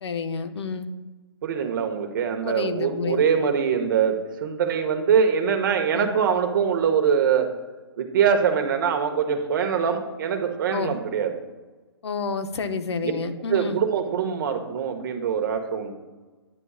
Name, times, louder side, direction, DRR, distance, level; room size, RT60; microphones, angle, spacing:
voice 1, 0.0-0.9 2.4-3.3 5.9-6.1 10.7-11.0 12.0-13.8, left 5 dB, 75° left, 8 dB, 0.8 m, -29 dB
voice 2, 1.4-7.5 8.0-11.3 13.0-13.1 13.5-15.9, right 7 dB, 50° right, 5 dB, 1.1 m, -23 dB
9.7 x 9.7 x 2.4 m, 1.3 s
hypercardioid pair, 155°, 14 cm